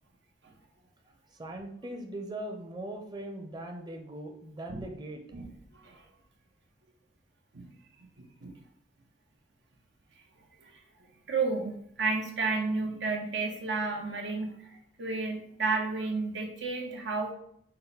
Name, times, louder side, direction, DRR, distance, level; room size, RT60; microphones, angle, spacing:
voice 1, 1.4-5.2, right 1 dB, 25° right, 3 dB, 0.6 m, -40 dB
voice 2, 8.2-8.6 10.6-10.8 11.3-17.3, right 3 dB, 85° right, 1 dB, 0.9 m, -32 dB
5.3 x 2.2 x 4.1 m, 0.68 s
head